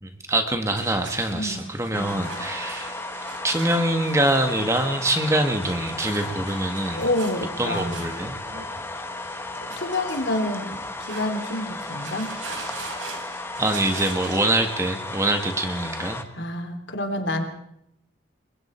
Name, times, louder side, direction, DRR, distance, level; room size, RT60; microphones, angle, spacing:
voice 1, 0.0-3.0 3.4-7.0 7.6-8.3 13.6-16.2, right 1 dB, 15° right, 5 dB, 1.6 m, -24 dB
sound 1, 0.8-14.7, right 4 dB, 85° right, 5.6 m, -41 dB
voice 2, 1.3-1.6 1.9-2.3 6.9-8.0 9.5-12.3 16.3-17.4, left 1 dB, 70° left, 5 dB, 3.1 m, -28 dB
sound 2, 1.9-16.2, left 2 dB, 10° left, 1.4 m, -35 dB
29.5 x 22.5 x 4.4 m, 0.76 s
head